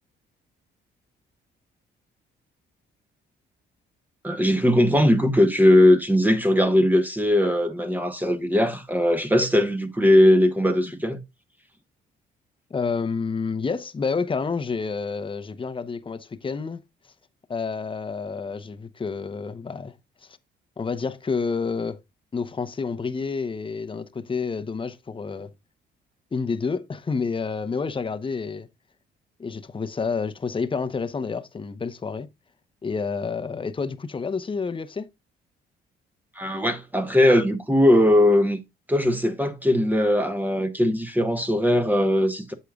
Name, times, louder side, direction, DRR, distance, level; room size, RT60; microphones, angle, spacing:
voice 1, 4.2-11.2 36.3-38.6 38.9-42.5, left 1 dB, 10° right, 1.0 m, -19 dB
voice 2, 12.7-16.8 17.5-19.9 20.8-22.0 22.3-25.5 26.3-28.7 29.4-32.3 32.8-35.1, left 5 dB, 25° left, 0.8 m, -29 dB
8.3 x 7.6 x 2.3 m
cardioid pair, 90°, 20 cm